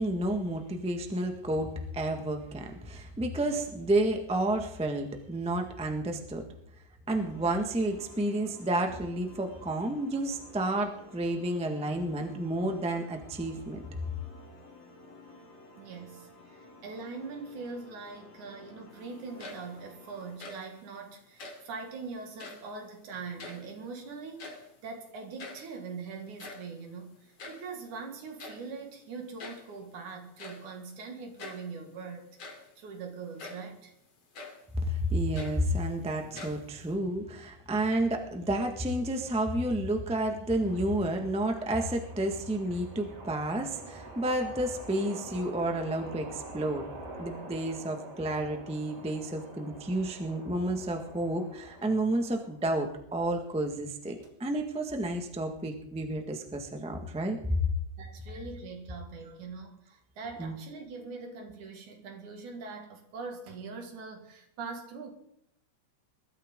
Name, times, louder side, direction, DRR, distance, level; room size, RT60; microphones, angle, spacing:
voice 1, 0.0-6.4 7.1-13.8 34.9-46.9 47.2-57.6 60.4-60.5, right 1 dB, 5° right, 0.6 m, -31 dB
sound 1, 7.1-20.4, left 2 dB, 90° left, 4.6 m, -53 dB
voice 2, 15.8-33.9 58.0-65.1, right 4 dB, 85° right, 3.5 m, -42 dB
sound 2, 19.2-19.9 20.2-20.8 21.3-21.7 22.3-22.8 23.1-24.0 24.2-24.8 25.1-25.2 25.4-25.7 26.2-27.7 28.4-28.7 29.4-29.8 30.4-30.7 31.4-31.7 32.2-32.8 33.4-33.7 34.3-34.7 35.1-36.0 36.3-36.9, left 3 dB, 55° left, 3.6 m, -45 dB
sound 3, 40.6-52.7 53.5-53.7 54.2-54.3, right 2 dB, 35° right, 2.9 m, -47 dB
21.0 x 13.0 x 3.8 m
omnidirectional pair, 3.4 m